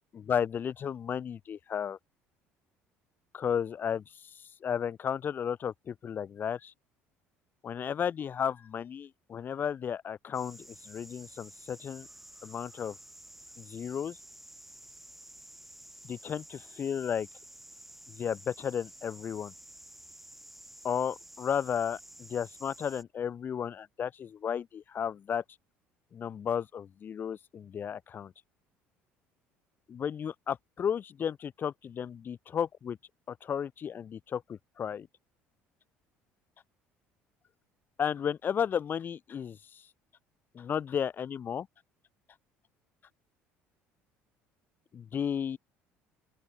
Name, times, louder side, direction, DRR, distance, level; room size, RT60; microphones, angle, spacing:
voice 1, 0.2-2.0 3.3-4.3 4.6-6.7 7.6-12.1 12.4-13.0 13.6-14.2 16.0-17.3 18.1-19.5 20.8-25.4 26.1-28.3 29.9-33.0 33.3-35.1 38.0-39.8 40.5-41.7 44.9-45.6, left 8 dB, 40° left, 0.8 m, -33 dB
sound 1, 10.3-23.0, right 1 dB, 5° right, 4.7 m, -52 dB
open air
supercardioid pair, 90°, 5 cm